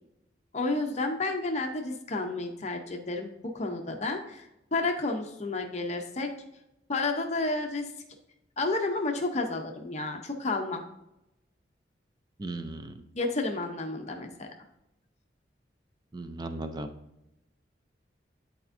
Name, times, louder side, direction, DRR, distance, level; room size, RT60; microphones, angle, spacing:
voice 1, 0.5-6.3 6.9-7.9 8.6-10.8 13.1-14.5, left 2 dB, 40° left, 3 dB, 0.7 m, -31 dB
voice 2, 12.4-13.0 16.1-16.9, right 2 dB, 25° right, 8 dB, 0.5 m, -36 dB
10.5 x 4.3 x 2.6 m, 0.87 s
head